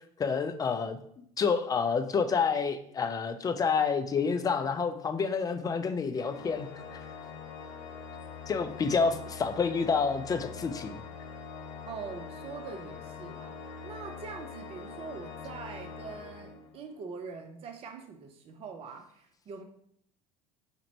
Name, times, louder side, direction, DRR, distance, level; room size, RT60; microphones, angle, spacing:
voice 1, 0.2-1.0 1.4-6.7 8.5-11.0, left 5 dB, 20° left, 8 dB, 0.4 m, -28 dB
Organ, 6.1-17.0, left 6 dB, 60° left, 0.7 m, -44 dB
voice 2, 11.9-13.6 13.8-19.6, right 5 dB, 35° right, 5 dB, 0.5 m, -43 dB
4.3 x 2.5 x 2.9 m, 0.68 s
hypercardioid pair, 70°, 17 cm